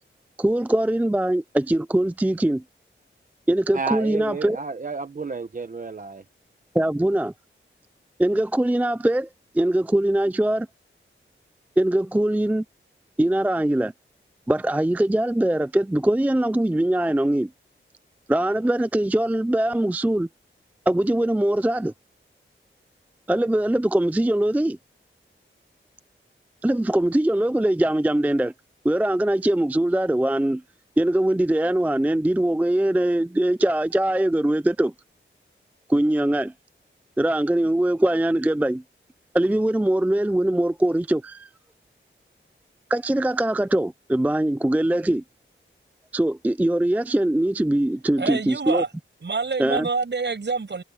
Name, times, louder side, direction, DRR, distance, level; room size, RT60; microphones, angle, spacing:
voice 1, 0.4-2.6 3.5-4.6 6.7-7.3 8.2-9.3 9.5-10.7 11.8-12.6 13.2-13.9 14.5-17.5 18.3-20.3 20.9-21.9 23.3-24.8 26.6-28.5 28.8-30.6 31.0-34.9 35.9-36.5 37.2-38.8 39.3-41.5 42.9-45.2 46.1-48.8 49.6-49.9, right 1 dB, 5° right, 0.4 m, -22 dB
voice 2, 3.7-6.2, right 4 dB, 40° right, 1.0 m, -31 dB
voice 3, 48.2-48.9 49.2-50.8, right 4 dB, 60° right, 8.0 m, -26 dB
wide cardioid pair, 110°, 21 cm